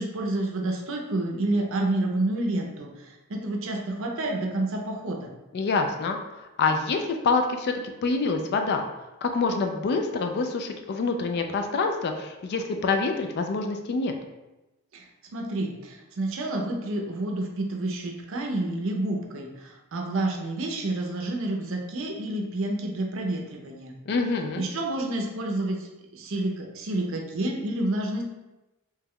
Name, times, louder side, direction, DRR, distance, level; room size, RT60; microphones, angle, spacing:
voice 1, 0.0-5.3 14.9-15.0 15.3-23.9 24.6-28.2, right 2 dB, 60° right, 1 dB, 0.5 m, -29 dB
voice 2, 5.5-8.9 9.2-14.2 24.1-24.6, left 4 dB, 45° left, 5 dB, 0.3 m, -26 dB
3.0 x 2.2 x 3.5 m, 1.0 s
head